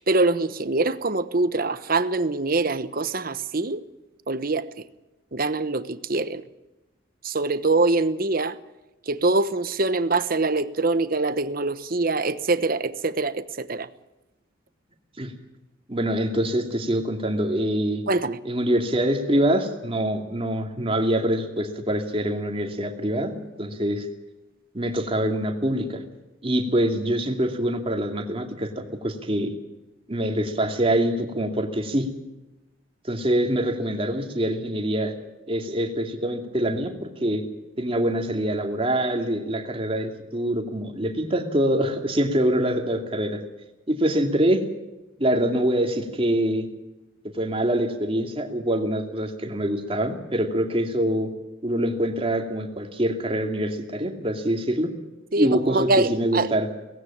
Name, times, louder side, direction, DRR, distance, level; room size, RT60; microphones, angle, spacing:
voice 1, 0.0-3.8 4.3-4.7 5.3-6.4 7.2-8.6 9.1-13.9 18.1-18.4 55.3-56.5, right 3 dB, 45° right, 1.1 m, -24 dB
voice 2, 15.9-18.0 18.4-24.1 24.7-26.0 26.4-29.5 30.1-32.1 33.1-35.1 35.5-37.4 37.8-43.4 43.9-44.6 45.2-46.7 47.2-51.3 51.6-54.9 55.4-56.7, right 1 dB, 30° right, 2.5 m, -25 dB
18.5 x 16.5 x 8.7 m
head